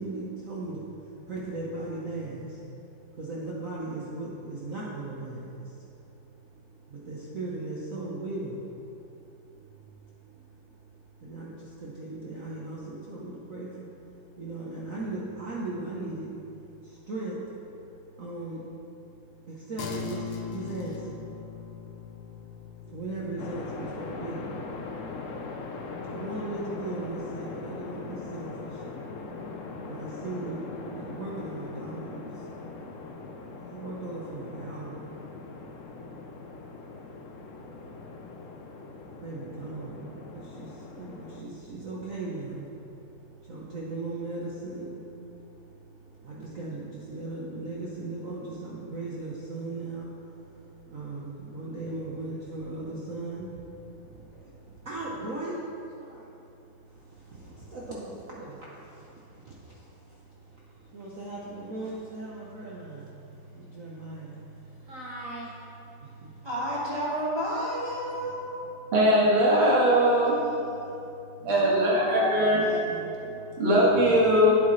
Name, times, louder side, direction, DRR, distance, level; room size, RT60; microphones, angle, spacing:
voice 1, 0.0-66.5 68.7-68.8 71.4-71.5 72.3-73.6, right 2 dB, 50° right, 1.2 m, -39 dB
sound 1, 19.8-29.5, left 5 dB, 75° left, 1.7 m, -43 dB
sound 2, 23.4-41.4, left 3 dB, 60° left, 0.8 m, -41 dB
voice 2, 66.4-68.7 71.4-72.8, equal, 15° right, 1.8 m, -31 dB
voice 3, 68.9-70.4 71.5-72.6 73.6-74.6, equal, 80° right, 2.4 m, -21 dB
11.5 x 8.5 x 3.2 m
omnidirectional pair, 2.2 m